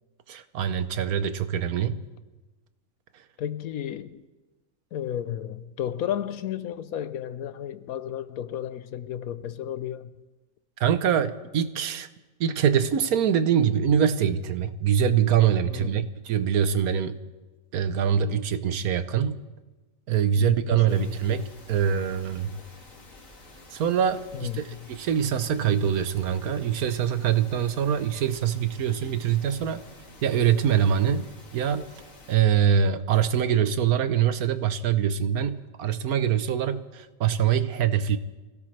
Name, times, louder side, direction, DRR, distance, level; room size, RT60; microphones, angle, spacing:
voice 1, 0.3-2.0 10.8-12.1 12.4-17.2 17.7-19.4 20.1-22.5 23.7-29.8 30.2-31.9 32.3-38.2, right 8 dB, 80° right, 1.3 m, -24 dB
voice 2, 3.4-4.2 4.9-10.2 15.7-16.1 20.3-21.3 24.3-24.8, left 10 dB, 80° left, 1.2 m, -33 dB
sound 1, 20.9-32.4, left 2 dB, 60° left, 2.7 m, -50 dB
25.5 x 17.0 x 3.3 m
omnidirectional pair, 1.5 m